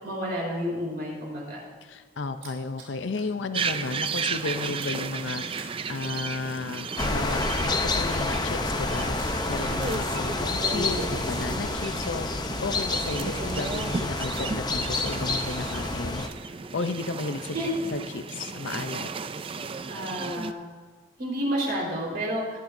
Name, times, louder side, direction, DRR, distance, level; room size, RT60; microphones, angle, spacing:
voice 1, 0.0-1.6 10.7-11.1 17.5-17.7 19.9-20.6 21.2-22.6, equal, 50° right, -2 dB, 4.2 m, -30 dB
voice 2, 1.8-17.5 17.9-19.1, left 3 dB, 65° left, 9 dB, 0.5 m, -34 dB
sound 1, 1.9-3.4 3.7-4.0 4.2-9.8 10.1-11.0, right 5 dB, 75° right, 3.2 m, -48 dB
sound 2, 3.5-20.5, right 5 dB, 25° right, 0.3 m, -34 dB
sound 3, 7.0-16.3, left 2 dB, 20° left, 0.6 m, -29 dB
20.0 x 10.0 x 2.6 m, 1.5 s
head